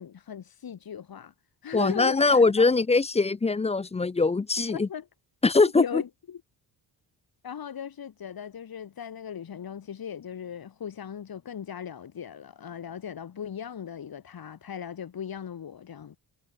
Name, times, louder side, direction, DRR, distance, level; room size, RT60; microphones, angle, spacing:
voice 1, 0.0-1.3 1.6-2.4 4.7-5.1 5.8-6.4 7.4-16.2, left 8 dB, 55° left, 4.3 m, -38 dB
voice 2, 1.7-4.9 5.4-6.0, left 3 dB, 15° left, 0.4 m, -22 dB
cardioid pair, 115°, 44 cm